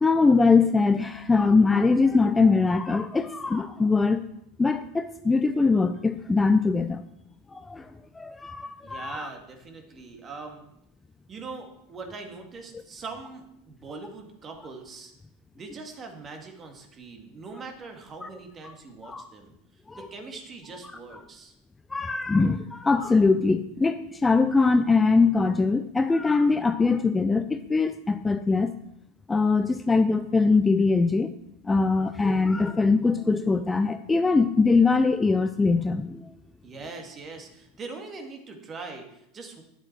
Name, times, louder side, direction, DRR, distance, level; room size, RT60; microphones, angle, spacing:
voice 1, 0.0-4.2 4.6-7.0 7.5-9.3 18.2-18.3 19.0-19.3 19.9-20.1 21.9-28.7 29.3-31.3 31.6-36.3, left 4 dB, 15° left, 10 dB, 0.5 m, -22 dB
voice 2, 8.8-10.6 11.3-15.1 15.5-19.5 19.9-21.5 36.6-39.6, right 4 dB, 30° right, 3 dB, 2.1 m, -41 dB
10.5 x 7.3 x 4.6 m, 0.80 s
hypercardioid pair, 85°, 0 cm